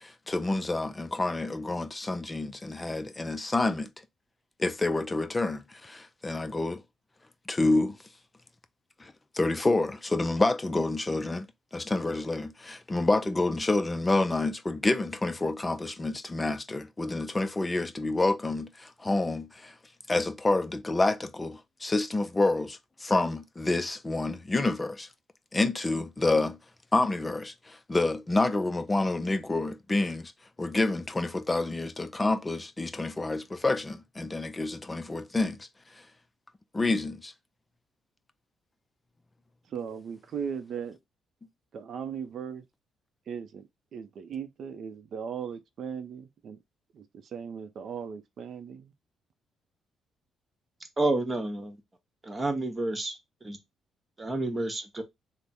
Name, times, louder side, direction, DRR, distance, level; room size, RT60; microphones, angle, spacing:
voice 1, 0.3-3.9 4.6-6.8 7.5-8.0 9.4-11.5 11.7-18.7 19.0-19.7 20.1-25.1 25.5-26.6 26.9-27.5 27.9-30.3 30.6-35.6 36.7-37.3, left 2 dB, 20° left, 0.4 m, -28 dB
voice 2, 39.7-41.0 41.7-42.6 43.3-46.6 46.9-48.9, right 7 dB, 60° right, 0.6 m, -38 dB
voice 3, 51.0-51.8 52.2-53.2 53.4-53.6 54.2-55.0, right 2 dB, 25° right, 0.9 m, -29 dB
3.4 x 2.1 x 4.2 m
cardioid pair, 90°, 0 cm